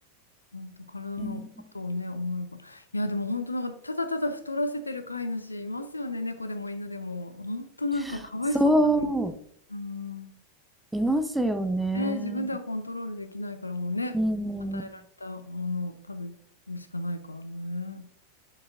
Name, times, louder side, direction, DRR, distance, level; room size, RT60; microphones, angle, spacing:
voice 1, 0.5-1.4 1.7-9.1 9.7-10.3 11.9-14.2 14.7-16.3 16.7-18.0, left 2 dB, 80° left, 9 dB, 0.7 m, -33 dB
voice 2, 8.5-9.4 10.9-12.5 14.1-14.8, right 1 dB, 5° right, 8 dB, 0.6 m, -26 dB
8.5 x 6.7 x 2.5 m, 0.64 s
figure-of-eight pair, 90°, 0 cm